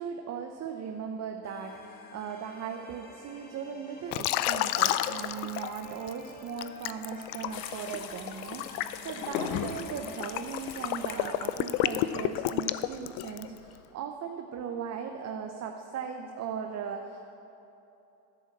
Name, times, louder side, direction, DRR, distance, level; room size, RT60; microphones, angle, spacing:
voice 1, 0.0-17.3, right 7 dB, 35° right, 4 dB, 0.8 m, -38 dB
sound 1, 1.4-12.2, left 2 dB, 20° left, 2.2 m, -51 dB
Liquid, 4.1-6.1 6.6-13.6, left 14 dB, 70° left, 0.6 m, -31 dB
sound 2, 7.5-12.5, left 7 dB, 90° left, 1.2 m, -40 dB
12.0 x 7.5 x 7.3 m, 2.9 s
supercardioid pair, 105°, 49 cm